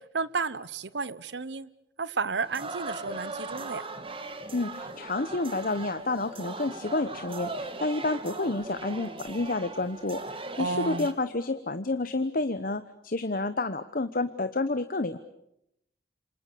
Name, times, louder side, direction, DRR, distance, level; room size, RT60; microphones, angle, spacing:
voice 1, 0.1-1.7 2.0-3.8 10.6-11.1, right 4 dB, 80° right, 1.0 m, -32 dB
sound 1, 2.4-11.1, right 3 dB, 30° right, 2.3 m, -39 dB
voice 2, 4.5-15.2, left 2 dB, 55° left, 1.0 m, -30 dB
28.0 x 26.5 x 6.9 m
head